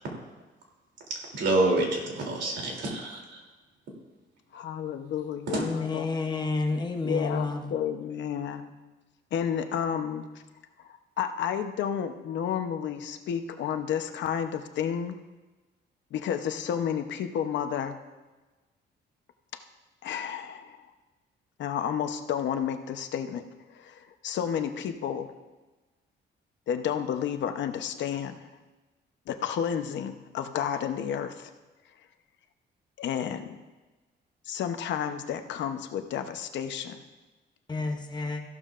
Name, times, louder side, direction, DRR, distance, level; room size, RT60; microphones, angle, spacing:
voice 1, 1.3-3.4 5.5-5.6, right 2 dB, 70° right, 0 dB, 3.1 m, -27 dB
voice 2, 4.5-6.1 7.0-8.7 9.3-10.3 11.2-15.2 16.1-17.9 20.0-20.8 21.6-23.4 23.7-25.3 26.7-28.4 29.3-31.5 33.0-33.6 34.5-37.0, left 8 dB, 70° left, 7 dB, 0.9 m, -31 dB
voice 3, 5.6-7.7 37.7-38.4, left 3 dB, 20° left, 4 dB, 0.8 m, -30 dB
15.0 x 12.0 x 2.5 m, 1.2 s
cardioid pair, 160°, 19 cm